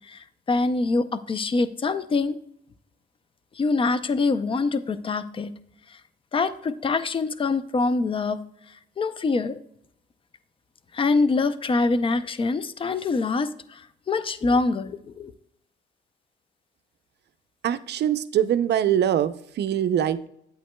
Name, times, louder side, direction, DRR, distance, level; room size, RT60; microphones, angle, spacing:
voice 1, 0.5-2.3 3.6-5.5 6.3-8.4 9.0-9.6 10.9-13.5 14.1-15.3, left 3 dB, 25° left, 14 dB, 0.5 m, -24 dB
voice 2, 17.6-20.3, right 10 dB, 60° right, 12 dB, 0.5 m, -23 dB
8.9 x 8.2 x 2.2 m, 0.73 s
cardioid pair, 90°, 20 cm